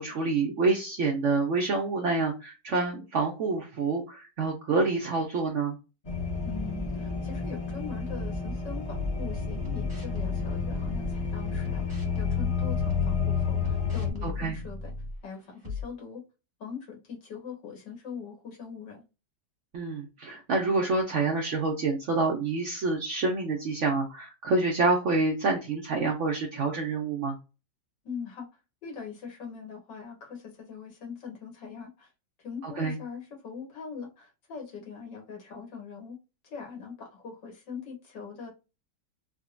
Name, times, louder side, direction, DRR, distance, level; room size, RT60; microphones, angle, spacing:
voice 1, 0.0-5.8 14.2-14.6 19.7-27.4 32.6-32.9, right 3 dB, 80° right, 1 dB, 0.6 m, -27 dB
sound 1, 6.0-14.1, left 5 dB, 50° left, 0.4 m, -30 dB
voice 2, 6.4-14.9 15.2-16.2 16.6-19.0 28.0-28.5 28.8-32.1 32.4-36.2 36.4-38.5, left 6 dB, 75° left, 0 dB, 1.9 m, -42 dB
sound 2, 8.9-11.2 11.6-15.2 15.6-15.8, left 4 dB, 25° right, 0.7 m, -37 dB
3.6 x 2.1 x 2.4 m, 0.29 s
omnidirectional pair, 2.0 m